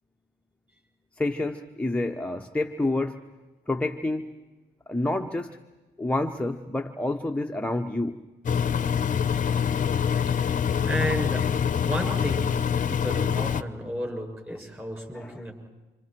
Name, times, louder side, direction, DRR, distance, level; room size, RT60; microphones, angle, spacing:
voice 1, 1.2-3.2 3.7-4.5 4.9-5.6 6.0-8.2 15.1-15.4, left 2 dB, 5° left, 4 dB, 1.0 m, -28 dB
Engine, 8.4-13.6, left 7 dB, 40° left, 0.8 m, -25 dB
voice 2, 10.8-11.4 11.7-12.6 12.9-15.5, equal, 10° right, 2 dB, 7.1 m, -33 dB
29.5 x 26.0 x 4.6 m, 1.2 s
cardioid pair, 90°, 20 cm